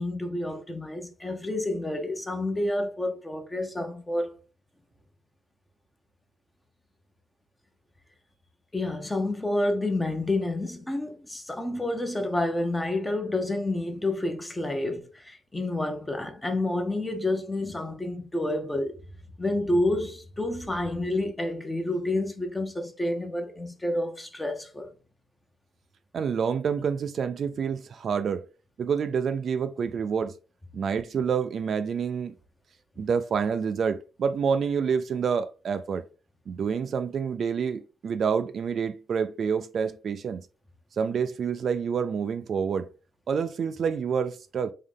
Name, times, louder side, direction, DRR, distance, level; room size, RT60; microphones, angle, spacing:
voice 1, 0.0-4.4 8.7-19.0 19.4-24.9, left 1 dB, 10° left, 0.8 m, -29 dB
voice 2, 26.1-28.4 28.8-30.3 30.7-32.3 33.0-36.0 36.5-40.4 40.9-42.9 43.3-44.7, right 6 dB, 50° right, 0.3 m, -28 dB
3.7 x 3.1 x 3.5 m
cardioid pair, 130°, 0 cm